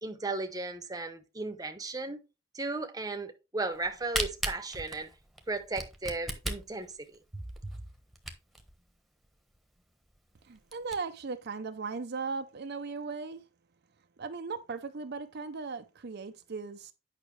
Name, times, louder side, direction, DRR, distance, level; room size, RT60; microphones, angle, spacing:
voice 1, 0.0-2.2 2.5-5.1 5.5-7.4, right 3 dB, 20° right, 0.9 m, -36 dB
Camera, 3.7-8.7 9.2-9.3 9.5-9.6 10.1-10.2 10.6-10.9, right 1 dB, ahead, 1.2 m, -36 dB
voice 2, 10.4-13.4 14.2-16.9, right 4 dB, 55° right, 0.6 m, -37 dB
9.1 x 5.8 x 3.2 m
head